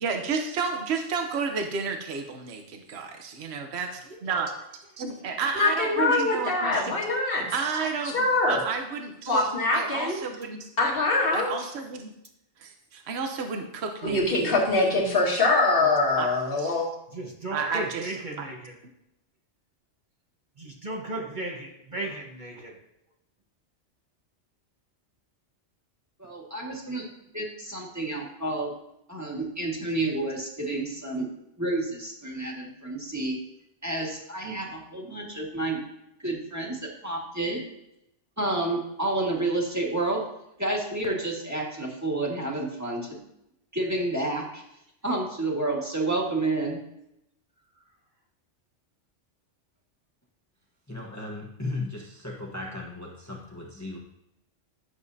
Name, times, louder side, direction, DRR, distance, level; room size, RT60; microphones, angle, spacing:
voice 1, 0.0-4.5 5.0-7.0 7.5-10.7 11.3-12.1 12.6-14.5 16.2-16.3 16.6-16.7 17.5-18.4, right 5 dB, 65° right, 4 dB, 1.1 m, -31 dB
voice 2, 5.6-7.5 8.1-8.6 9.3-10.2 10.8-11.5 14.0-16.9, left 3 dB, 50° left, -3 dB, 2.0 m, -23 dB
voice 3, 17.1-18.7 20.6-22.7, right 2 dB, 40° right, -1 dB, 1.3 m, -35 dB
voice 4, 26.2-27.0 27.3-28.7 29.1-31.3 31.6-33.4 33.8-35.8 36.2-37.6 38.4-40.2 40.6-43.2 43.7-44.6 45.0-46.8, right 2 dB, 15° right, -2 dB, 1.7 m, -30 dB
voice 5, 50.9-54.0, left 2 dB, 15° left, -2 dB, 1.2 m, -36 dB
11.5 x 7.0 x 2.7 m, 0.83 s
omnidirectional pair, 1.2 m